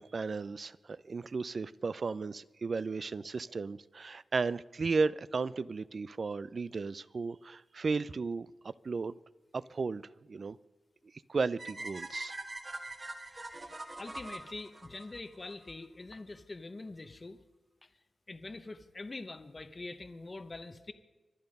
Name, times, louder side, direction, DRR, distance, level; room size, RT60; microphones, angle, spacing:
voice 1, 0.0-9.2 9.5-10.6 11.3-12.3, right 4 dB, 50° right, 18 dB, 0.4 m, -35 dB
sound 1, 11.6-15.7, right 2 dB, 30° right, 1.5 m, -43 dB
voice 2, 14.0-17.4 17.8-17.9 18.3-20.9, left 2 dB, 35° left, 10 dB, 0.8 m, -44 dB
24.5 x 9.2 x 5.3 m, 1.1 s
wide cardioid pair, 110°, 0 cm